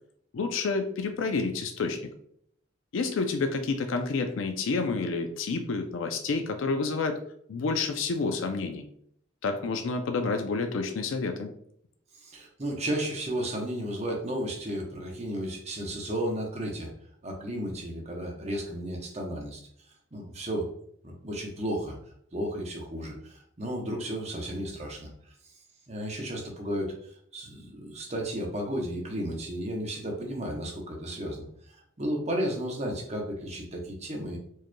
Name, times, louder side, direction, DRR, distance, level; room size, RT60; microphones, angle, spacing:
voice 1, 0.3-2.0 2.9-7.2 7.5-8.8 9.4-11.5, left 4 dB, 85° left, 6 dB, 0.4 m, -29 dB
voice 2, 12.2-16.9 17.2-19.6 20.1-20.7 21.0-22.0 22.3-25.1 25.9-34.4, right 1 dB, 35° right, 0 dB, 0.9 m, -33 dB
4.6 x 3.0 x 2.2 m, 0.68 s
head